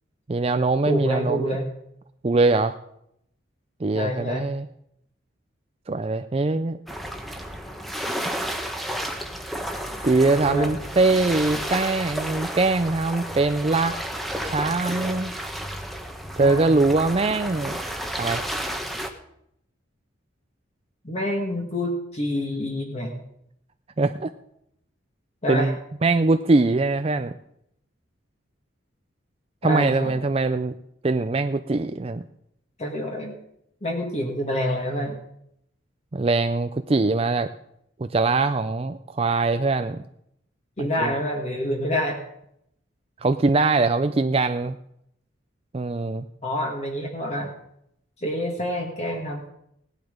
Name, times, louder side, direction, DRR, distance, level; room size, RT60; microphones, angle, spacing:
voice 1, 0.3-1.6 2.2-2.7 3.8-4.7 5.9-6.8 10.0-14.0 14.4-15.3 16.4-17.8 18.2-18.5 24.0-24.3 25.5-25.7 26.0-27.3 29.6-30.7 31.0-32.2 36.1-37.5 38.0-40.0 40.8-41.1 43.2-44.8 45.7-46.2, right 3 dB, 30° right, 9 dB, 0.4 m, -22 dB
voice 2, 0.9-1.7 3.9-4.5 10.4-10.7 16.4-16.7 21.0-23.1 25.4-25.7 29.6-30.2 32.8-33.3 33.8-35.2 40.8-42.2 46.4-47.5 48.2-49.5, equal, 35° left, 1 dB, 1.8 m, -27 dB
sound 1, 6.9-19.1, equal, ahead, 1.1 m, -32 dB
17.5 x 11.0 x 5.2 m, 0.76 s
head